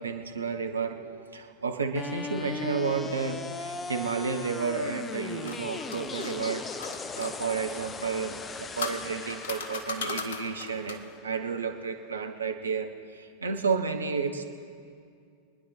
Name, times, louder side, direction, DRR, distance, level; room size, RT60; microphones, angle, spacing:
voice 1, 0.0-14.5, right 5 dB, 75° right, 5 dB, 1.0 m, -32 dB
sound 1, 2.0-12.0, left 5 dB, 20° left, 0.6 m, -39 dB
sound 2, 5.0-7.3 8.3-11.1, left 4 dB, 60° left, 1.1 m, -38 dB
24.5 x 10.0 x 4.3 m, 2.4 s
figure-of-eight pair, 90°, 0 cm